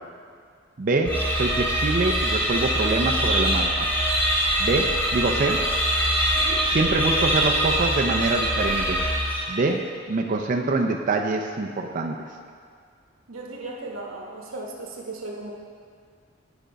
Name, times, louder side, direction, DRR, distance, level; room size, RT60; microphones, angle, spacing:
voice 1, 0.8-3.9 4.6-5.6 6.7-9.1 9.5-12.2, right 3 dB, 40° right, 2 dB, 0.4 m, -25 dB
sound 1, 1.0-9.7, equal, 10° left, 1.5 m, -23 dB
voice 2, 13.3-15.5, right 2 dB, 85° right, -2 dB, 1.0 m, -36 dB
9.0 x 5.1 x 5.2 m, 2.1 s
head